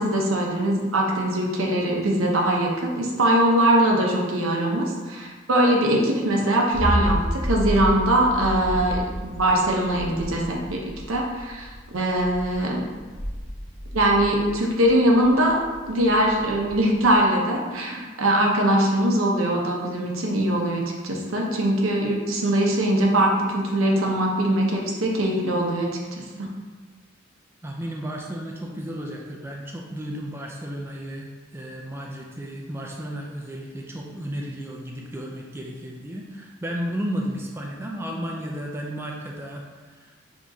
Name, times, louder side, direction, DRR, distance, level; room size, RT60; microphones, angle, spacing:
voice 1, 0.0-10.8 11.1-12.8 13.9-15.6 15.9-26.5, right 1 dB, 90° right, -1 dB, 0.8 m, -22 dB
sound 1, 6.7-17.2, equal, 30° left, 0.9 m, -31 dB
voice 2, 27.6-40.1, equal, 10° right, -1 dB, 0.3 m, -33 dB
6.1 x 3.0 x 2.7 m, 1.4 s
head